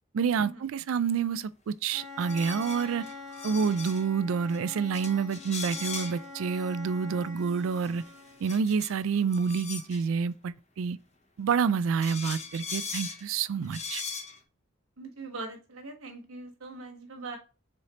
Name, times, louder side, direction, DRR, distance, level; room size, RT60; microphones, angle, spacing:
voice 1, 0.1-3.1 3.4-8.0 8.4-11.0 11.4-14.0, right 6 dB, 75° right, 0.3 m, -28 dB
Bowed string instrument, 1.9-8.6, left 4 dB, ahead, 1.1 m, -44 dB
sound 1, 2.2-4.0 4.5-4.6 4.9-6.3 7.6-10.0 11.5-11.6 12.0-13.2 13.6-14.4, left 5 dB, 35° left, 0.9 m, -39 dB
voice 2, 15.0-17.4, right 3 dB, 90° right, 1.1 m, -41 dB
3.8 x 3.2 x 4.1 m
head